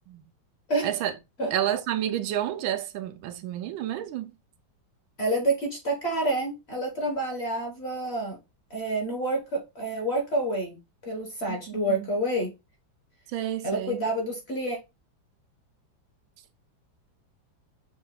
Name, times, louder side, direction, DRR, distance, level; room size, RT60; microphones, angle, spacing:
voice 1, 0.8-1.1 1.5-4.3 11.5-12.1 13.3-14.0, right 11 dB, 85° right, 1.4 m, -30 dB
voice 2, 5.2-8.4 8.7-10.8 11.0-12.5 13.6-14.8, right 1 dB, 45° left, 1.0 m, -28 dB
6.1 x 2.3 x 3.1 m
omnidirectional pair, 2.1 m